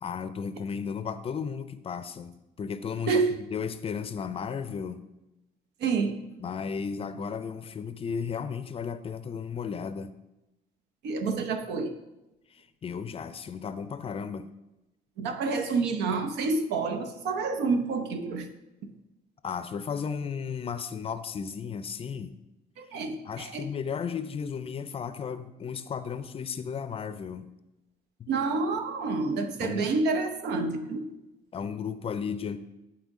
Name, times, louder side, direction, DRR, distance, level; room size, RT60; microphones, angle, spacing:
voice 1, 0.0-5.0 6.4-10.1 12.5-14.5 19.4-22.3 23.2-27.5 28.2-28.3 29.6-29.9 31.5-32.6, left 6 dB, 35° left, 12 dB, 0.5 m, -34 dB
voice 2, 3.1-3.5 5.8-6.2 11.0-11.9 15.2-18.5 18.8-18.9 22.8-23.7 28.3-31.1, right 4 dB, 80° right, 7 dB, 0.8 m, -28 dB
10.5 x 4.3 x 3.7 m, 0.96 s
cardioid pair, 110°, 17 cm